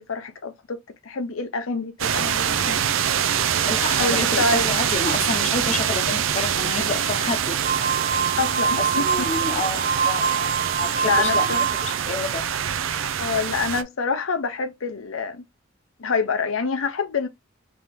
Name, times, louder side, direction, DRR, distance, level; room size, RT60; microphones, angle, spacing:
voice 1, 0.0-2.8 4.0-4.7 8.4-9.3 11.0-11.6 13.2-15.4 16.0-17.3, left 4 dB, 90° left, 0.7 m, -26 dB
sound 1, 2.0-13.8, right 9 dB, 70° right, 0.5 m, -24 dB
voice 2, 3.7-7.6 8.8-10.5 10.8-12.5, left 3 dB, 35° left, 0.7 m, -29 dB
sound 2, 7.6-12.0, right 6 dB, 45° right, 0.9 m, -25 dB
3.7 x 2.9 x 3.3 m
head